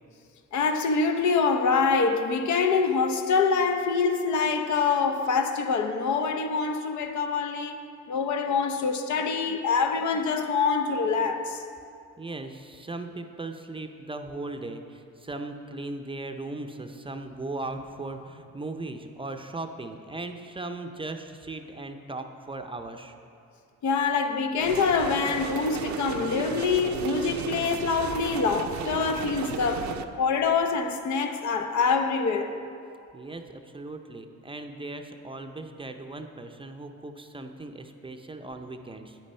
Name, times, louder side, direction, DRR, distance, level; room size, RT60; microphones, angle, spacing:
voice 1, 0.5-7.8 8.1-11.6 23.8-32.5, left 5 dB, 70° left, 0.8 m, -25 dB
voice 2, 12.2-23.2 33.1-39.2, right 2 dB, 15° right, 0.5 m, -38 dB
sound 1, 24.6-30.0, right 8 dB, 70° right, 0.5 m, -35 dB
9.5 x 8.8 x 4.3 m
cardioid pair, 90°, 30 cm